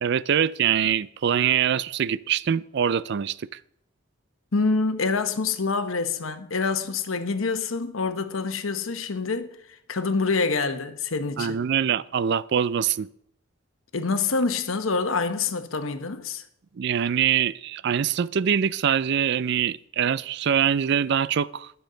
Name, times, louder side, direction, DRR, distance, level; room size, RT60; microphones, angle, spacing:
voice 1, 0.0-3.4 11.4-13.1 16.8-21.7, right 8 dB, 60° right, 0.4 m, -24 dB
voice 2, 4.5-11.6 13.9-16.4, left 4 dB, 90° left, 1.0 m, -26 dB
20.5 x 7.0 x 3.9 m
head